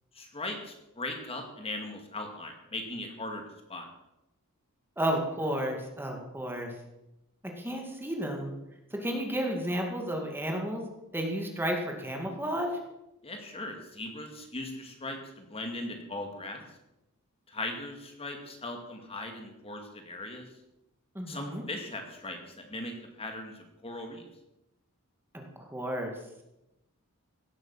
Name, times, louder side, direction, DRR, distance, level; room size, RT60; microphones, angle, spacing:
voice 1, 0.1-3.4 3.7-3.9 13.2-16.6 17.5-20.5 21.3-24.2, left 2 dB, 25° left, 3 dB, 2.2 m, -39 dB
voice 2, 5.0-6.7 7.6-8.5 8.9-10.8 11.1-12.7 21.1-21.6 25.3-26.1, equal, 10° right, 2 dB, 2.2 m, -32 dB
17.0 x 8.8 x 7.3 m, 0.91 s
head